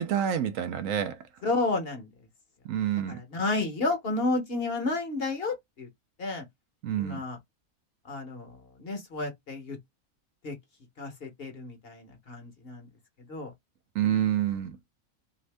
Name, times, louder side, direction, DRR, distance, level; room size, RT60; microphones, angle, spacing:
voice 1, 0.0-1.2 2.6-3.2 6.8-7.2 13.9-14.8, right 10 dB, 70° right, 0.9 m, -28 dB
voice 2, 1.4-2.1 3.1-5.9 6.2-6.4 7.0-7.4 8.1-9.8 10.4-10.6 11.0-12.9 13.3-13.5, left 3 dB, 50° left, 1.0 m, -31 dB
2.7 x 2.5 x 3.2 m
omnidirectional pair, 1.5 m